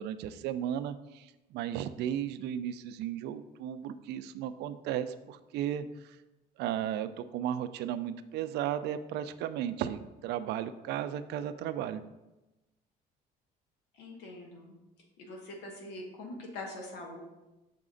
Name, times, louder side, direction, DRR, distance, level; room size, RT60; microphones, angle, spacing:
voice 1, 0.0-6.2 6.6-12.0, right 10 dB, 80° right, 12 dB, 0.4 m, -35 dB
voice 2, 13.9-14.7 15.2-17.2, left 2 dB, 90° left, 1 dB, 1.2 m, -43 dB
5.9 x 4.1 x 3.8 m, 1.0 s
cardioid pair, 110°, 17 cm